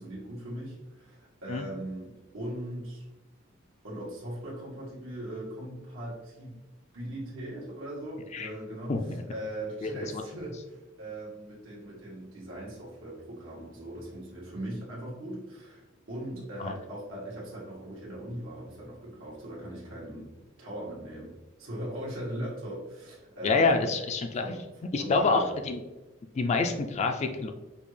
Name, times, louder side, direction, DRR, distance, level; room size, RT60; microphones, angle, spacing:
voice 1, 0.0-3.0 3.8-6.5 6.9-8.9 9.3-23.9 24.4-24.6 25.0-25.5, right 1 dB, 90° right, -6 dB, 1.3 m, -39 dB
voice 2, 9.8-10.2 16.6-16.7 23.4-24.4 24.9-25.8 26.3-27.5, left 4 dB, 35° left, 5 dB, 0.3 m, -27 dB
5.3 x 2.3 x 3.2 m, 1.1 s
head